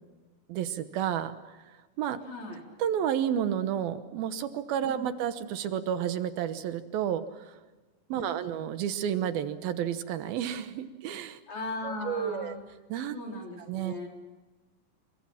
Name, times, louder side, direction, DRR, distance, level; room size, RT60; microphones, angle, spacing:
voice 1, 0.5-2.2 2.8-7.5 8.1-11.4 11.8-12.6 12.9-13.2 13.7-14.0, right 9 dB, 80° right, 10 dB, 2.9 m, -31 dB
voice 2, 2.2-2.6 4.8-5.0 8.1-8.5 11.5-12.6 13.1-14.1, left 2 dB, 50° left, 0 dB, 6.0 m, -38 dB
28.5 x 24.0 x 5.9 m, 1.2 s
omnidirectional pair, 4.3 m